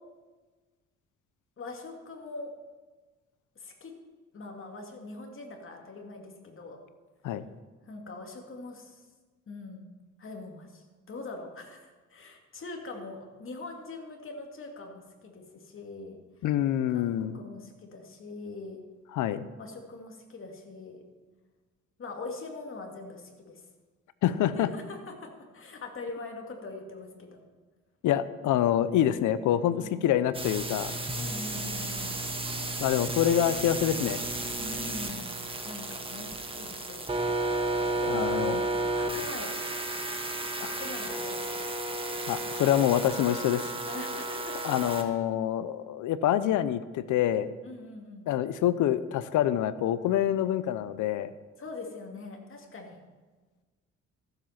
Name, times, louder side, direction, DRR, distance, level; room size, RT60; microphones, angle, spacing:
voice 1, 1.6-2.5 3.6-3.9 4.3-6.8 7.9-9.1 9.5-9.9 10.2-16.2 16.9-18.8 19.6-21.0 22.0-23.6 24.5-25.3 25.5-27.4 29.7-30.1 31.2-32.2 34.6-35.3 35.6-37.3 38.0-38.5 38.9-39.6 40.6-41.4 43.8-45.0 47.6-48.3 51.6-53.0, left 3 dB, 45° left, 2 dB, 2.4 m, -42 dB
voice 2, 16.4-17.4 19.1-19.4 24.2-24.7 28.0-31.0 32.8-34.2 38.1-38.6 40.6-40.8 42.3-43.7 44.6-47.5 48.3-51.3, left 11 dB, 80° left, 14 dB, 0.7 m, -26 dB
sound 1, 30.3-45.0, right 2 dB, 20° right, 1.5 m, -33 dB
14.0 x 7.9 x 5.9 m, 1.3 s
cardioid pair, 90°, 30 cm